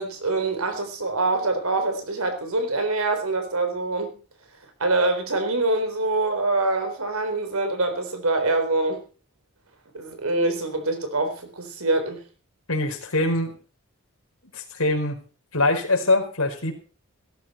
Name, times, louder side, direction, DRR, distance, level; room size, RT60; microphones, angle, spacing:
voice 1, 0.0-4.1 4.8-9.0 9.9-12.2, right 2 dB, 80° right, 7 dB, 4.1 m, -25 dB
voice 2, 12.7-13.6 14.5-15.2 15.5-16.7, left 2 dB, 75° left, 2 dB, 4.9 m, -23 dB
17.5 x 14.0 x 4.4 m, 0.37 s
head